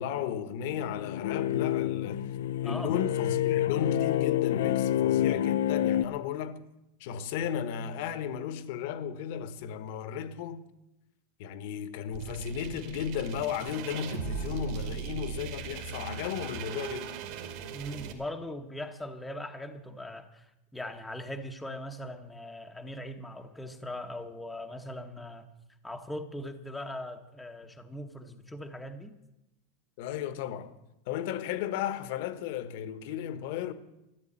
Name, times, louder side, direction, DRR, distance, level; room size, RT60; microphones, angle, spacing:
voice 1, 0.0-2.3 2.6-6.6 7.0-10.6 11.4-17.1 30.0-30.7 31.1-33.7, left 8 dB, 55° left, 1.2 m, -34 dB
sound 1, 0.7-6.0, left 12 dB, 90° left, 0.5 m, -28 dB
voice 2, 2.6-2.9 17.7-25.5 25.8-29.1, left 1 dB, 5° left, 0.9 m, -40 dB
sound 2, 12.1-18.1, right 8 dB, 55° right, 2.5 m, -39 dB
13.5 x 10.0 x 8.8 m
supercardioid pair, 160°, 0 cm